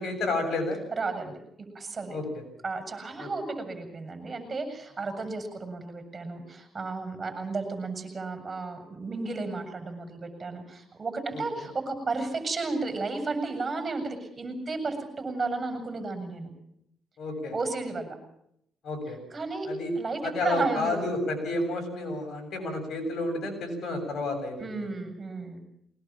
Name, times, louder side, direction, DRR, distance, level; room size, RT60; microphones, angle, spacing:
voice 1, 0.0-0.8 2.1-2.4 3.2-3.3 11.3-11.7 17.2-17.5 18.8-19.2 19.7-19.9 20.2-24.9, left 2 dB, 60° left, 5 dB, 7.7 m, -31 dB
voice 2, 1.0-2.2 2.6-16.5 17.5-18.2 19.3-19.7 20.0-21.0 24.6-25.6, right 3 dB, 35° right, 7 dB, 7.2 m, -33 dB
22.5 x 19.5 x 7.5 m, 0.75 s
cardioid pair, 90°, 0 cm